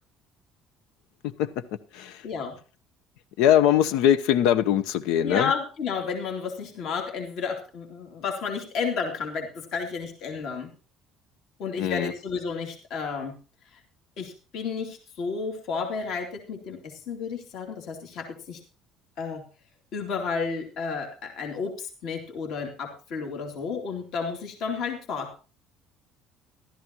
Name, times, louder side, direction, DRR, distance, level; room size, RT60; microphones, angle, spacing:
voice 1, 2.2-2.6 5.2-10.7 11.6-13.4 14.2-18.6 19.2-19.4 19.9-25.4, left 5 dB, 50° left, 3 dB, 2.7 m, -32 dB
voice 2, 3.4-5.5 11.8-12.1, left 10 dB, 75° left, 14 dB, 0.8 m, -21 dB
15.0 x 13.0 x 3.0 m, 0.34 s
cardioid pair, 180°, 0 cm